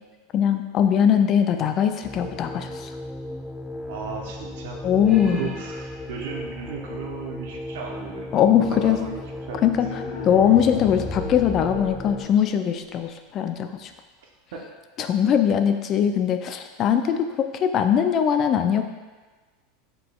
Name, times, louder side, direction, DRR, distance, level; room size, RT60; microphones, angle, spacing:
voice 1, 0.3-2.9 4.8-5.5 8.3-9.0 9.6-9.9 10.2-13.9 15.0-18.8, left 9 dB, 40° left, 7 dB, 0.3 m, -21 dB
sound 1, 2.0-12.2, left 1 dB, 10° left, 0.7 m, -36 dB
voice 2, 3.9-4.8 5.1-8.3 8.7-9.2 9.5-9.7, right 5 dB, 75° right, 0 dB, 0.7 m, -35 dB
sound 2, 9.9-12.9, left 3 dB, 75° left, 0.7 m, -36 dB
4.8 x 3.8 x 2.3 m, 1.3 s
hypercardioid pair, 110°, 0 cm